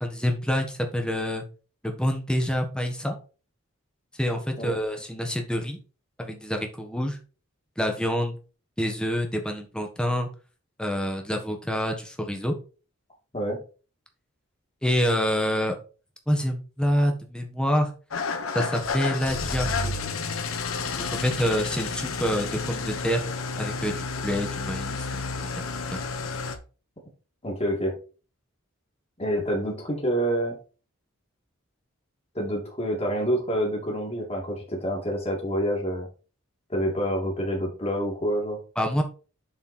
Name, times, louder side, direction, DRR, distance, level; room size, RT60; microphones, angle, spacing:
voice 1, 0.0-1.4 1.8-3.2 4.2-5.8 6.2-7.2 7.8-8.4 8.8-10.3 10.8-12.5 14.8-15.7 16.3-17.9 18.5-19.9 21.1-23.2 23.6-25.6 25.9-26.0 38.8-39.0, equal, 5° left, 3 dB, 1.3 m, -27 dB
Engine starting / Idling, 18.1-26.6, left 4 dB, 75° left, 1.0 m, -31 dB
voice 2, 27.4-28.0 29.2-30.6 32.3-36.1 36.7-38.6, equal, 30° left, -1 dB, 2.4 m, -27 dB
7.4 x 4.4 x 4.4 m, 0.35 s
head